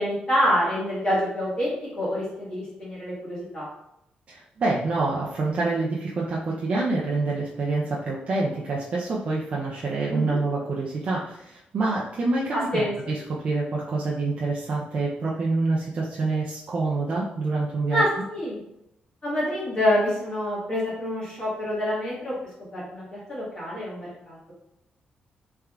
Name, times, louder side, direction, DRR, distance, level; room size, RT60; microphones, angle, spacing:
voice 1, 0.0-3.7 10.1-10.4 12.5-13.1 17.9-18.6 19.2-22.3 22.7-24.5, equal, 25° left, -7 dB, 1.5 m, -27 dB
voice 2, 4.3-18.0, right 3 dB, 40° right, -4 dB, 0.4 m, -27 dB
3.4 x 3.3 x 2.3 m, 0.81 s
wide cardioid pair, 175°, 3 cm